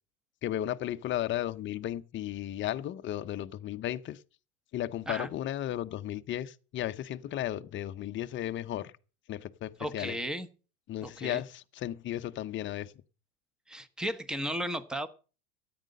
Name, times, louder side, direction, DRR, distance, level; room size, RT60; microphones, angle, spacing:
voice 1, 0.4-4.2 4.7-8.9 9.3-10.2 10.9-12.9, left 12 dB, 25° left, 0.7 m, -34 dB
voice 2, 9.8-10.5 11.0-11.4 13.7-15.1, equal, ahead, 0.9 m, -35 dB
13.5 x 9.5 x 6.4 m
supercardioid pair, 135°, 43 cm